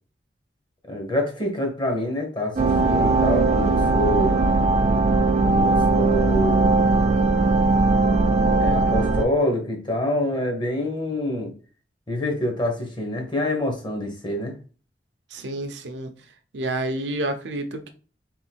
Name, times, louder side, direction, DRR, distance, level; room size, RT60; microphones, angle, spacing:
voice 1, 0.9-4.4 5.4-6.7 8.4-11.5 12.1-14.5, left 1 dB, 25° left, 1.0 m, -26 dB
sound 1, 2.5-9.2, right 3 dB, 40° right, 0.4 m, -19 dB
voice 2, 15.3-16.1 16.5-17.9, right 1 dB, 90° right, 0.7 m, -29 dB
3.7 x 2.6 x 4.4 m
head